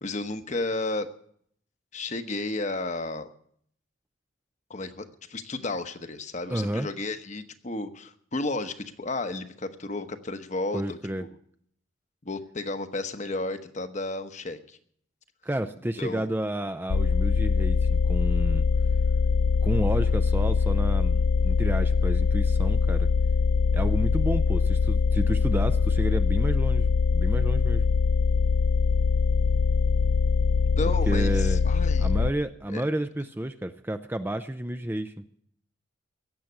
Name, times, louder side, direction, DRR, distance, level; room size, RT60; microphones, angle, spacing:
voice 1, 0.0-1.1 1.9-3.3 4.7-11.0 12.2-14.8 16.0-16.2 30.8-32.1 32.7-32.8, left 2 dB, 35° left, 9 dB, 1.1 m, -32 dB
voice 2, 6.5-6.9 10.7-11.2 15.4-18.7 19.6-23.1 23.7-26.9 27.1-27.8 31.1-31.6 32.0-35.2, right 1 dB, 10° right, 8 dB, 0.5 m, -31 dB
sound 1, 16.9-32.3, left 5 dB, 90° left, 0.6 m, -23 dB
17.0 x 7.5 x 9.4 m, 0.64 s
head